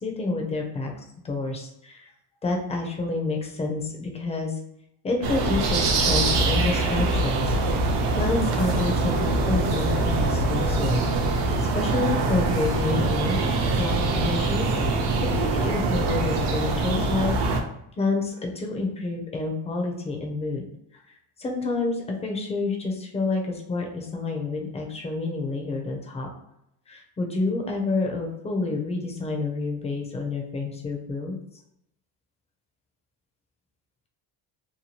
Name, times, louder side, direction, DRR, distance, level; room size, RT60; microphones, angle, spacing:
voice 1, 0.0-0.9 1.2-2.1 2.4-4.6 5.0-7.6 8.2-13.5 13.8-14.7 15.2-17.4 18.0-20.6 21.1-26.3 26.9-31.4, left 3 dB, 15° left, 1 dB, 0.4 m, -28 dB
sound 1, 5.2-17.6, right 2 dB, 65° right, 0.6 m, -24 dB
2.8 x 2.2 x 2.9 m, 0.78 s
cardioid pair, 140°, 43 cm